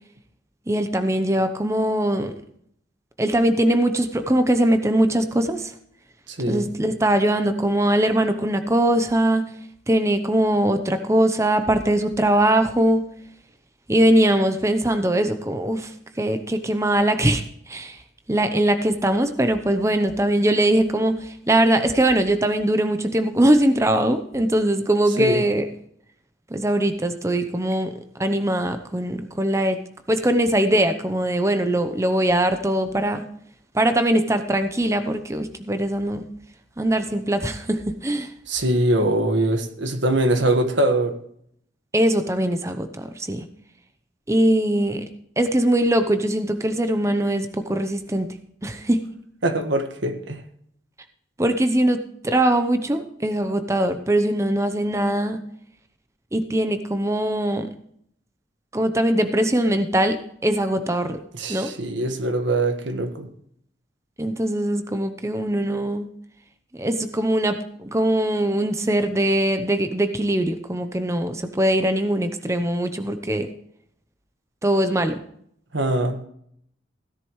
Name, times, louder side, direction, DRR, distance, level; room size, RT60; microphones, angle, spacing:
voice 1, 0.7-2.3 3.2-5.7 6.5-9.5 9.9-13.1 13.9-18.0 18.3-25.7 26.5-29.8 30.1-33.3 33.7-36.2 36.8-38.3 41.9-43.5 44.3-45.0 45.4-48.3 48.6-49.1 51.4-55.4 56.3-57.7 58.7-61.2 61.5-61.7 64.2-66.1 66.7-73.5 74.6-75.2, right 1 dB, 15° right, 8 dB, 0.7 m, -21 dB
voice 2, 6.3-6.7 25.2-25.4 38.5-41.1 49.4-50.4 61.3-63.3 75.7-76.2, right 1 dB, 85° right, 7 dB, 1.5 m, -22 dB
16.5 x 10.5 x 3.1 m, 0.68 s
head